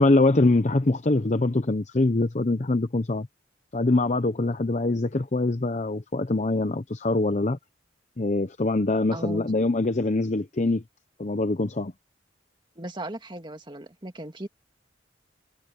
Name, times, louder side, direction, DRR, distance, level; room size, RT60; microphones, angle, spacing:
voice 1, 0.0-3.3 3.7-7.6 8.2-10.8 11.2-11.9, left 2 dB, 40° left, 0.7 m, -23 dB
voice 2, 9.1-9.5 12.8-14.5, right 1 dB, 25° right, 2.0 m, -37 dB
head